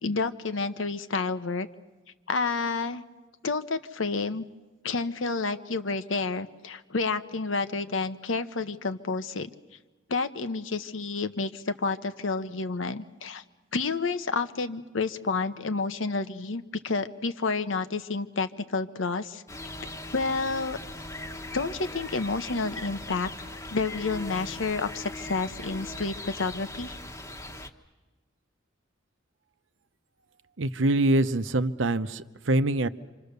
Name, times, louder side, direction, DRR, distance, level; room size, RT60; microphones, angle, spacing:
voice 1, 0.0-1.7 2.3-3.0 3.4-4.4 4.8-9.5 10.1-13.4 13.7-19.4 20.1-20.8 21.5-27.0, left 4 dB, 90° left, 10 dB, 1.0 m, -30 dB
sound 1, 19.5-27.7, left 1 dB, 15° left, 1.2 m, -40 dB
voice 2, 30.6-32.9, right 2 dB, 75° right, 12 dB, 0.8 m, -24 dB
27.0 x 26.5 x 6.8 m, 1.2 s
head